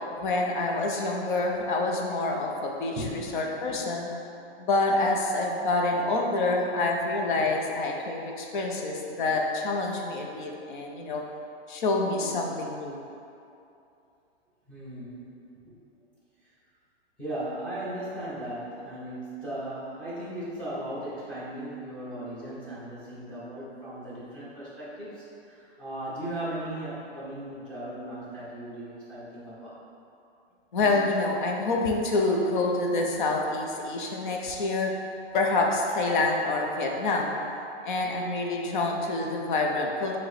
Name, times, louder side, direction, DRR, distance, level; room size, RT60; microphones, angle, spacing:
voice 1, 0.2-4.1 4.6-11.2 11.7-13.0 30.7-34.9 35.3-37.4 37.8-40.2, left 2 dB, 50° left, 0 dB, 0.6 m, -27 dB
voice 2, 1.1-1.5 3.0-3.4 3.6-3.8 14.7-15.8 16.4-16.5 17.2-29.8, right 1 dB, 5° left, -10 dB, 0.7 m, -37 dB
5.2 x 2.1 x 4.1 m, 2.7 s
hypercardioid pair, 160°, 33 cm